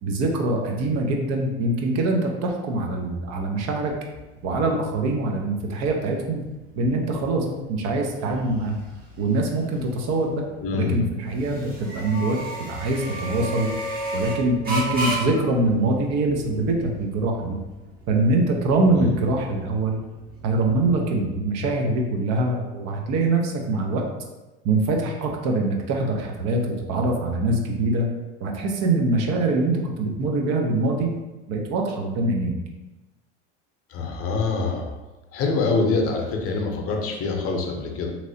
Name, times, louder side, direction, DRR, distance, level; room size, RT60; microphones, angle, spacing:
voice 1, 0.0-3.9 4.4-6.4 6.8-8.8 9.2-10.3 10.7-13.7 14.1-17.6 18.1-20.0 20.4-24.0 24.6-28.0 28.4-31.1 31.5-32.5, right 2 dB, 55° right, 1 dB, 0.7 m, -23 dB
sound 1, 3.9-21.1, right 1 dB, 30° right, 0.9 m, -35 dB
voice 2, 10.6-11.0 19.0-19.1 33.9-34.9 35.3-38.1, left 4 dB, 45° left, 2 dB, 0.7 m, -25 dB
3.0 x 2.8 x 2.7 m, 1.1 s
hypercardioid pair, 80°, 32 cm